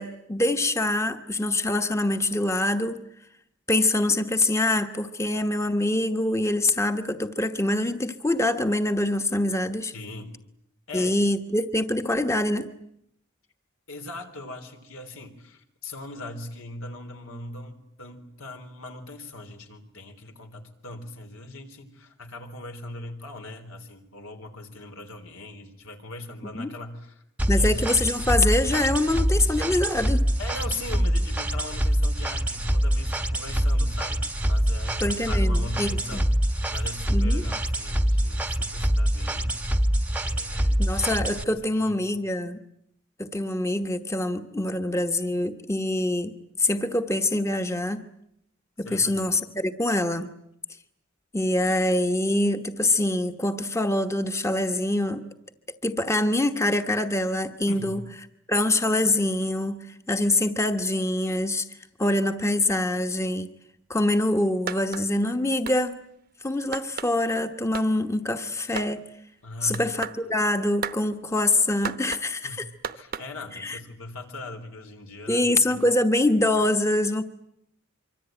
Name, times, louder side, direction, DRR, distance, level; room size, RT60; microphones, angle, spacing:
voice 1, 0.0-3.0 3.7-9.9 10.9-12.7 26.5-26.7 27.5-30.3 35.0-36.2 37.1-37.4 40.8-42.6 43.2-48.0 48.8-50.3 51.3-55.2 55.8-58.0 58.5-61.7 62.0-63.5 63.9-66.0 66.4-69.0 69.6-72.6 73.6-73.8 75.3-77.2, left 1 dB, 15° left, 1.1 m, -25 dB
voice 2, 9.9-10.3 10.9-11.1 13.9-27.2 27.5-27.7 30.4-39.6 40.2-41.0 41.5-42.0 48.9-49.3 57.7-58.0 69.4-69.9 72.4-72.7 72.9-75.8, left 2 dB, 85° left, 3.7 m, -40 dB
sound 1, 27.4-41.4, equal, 5° right, 1.0 m, -25 dB
sound 2, 64.7-65.1 65.7-65.8 66.7-67.1 67.7-67.9 68.8-68.9 69.7-70.2 70.8-71.0 71.8-72.3 72.8-73.3, right 6 dB, 50° right, 1.0 m, -33 dB
25.0 x 24.5 x 9.0 m
head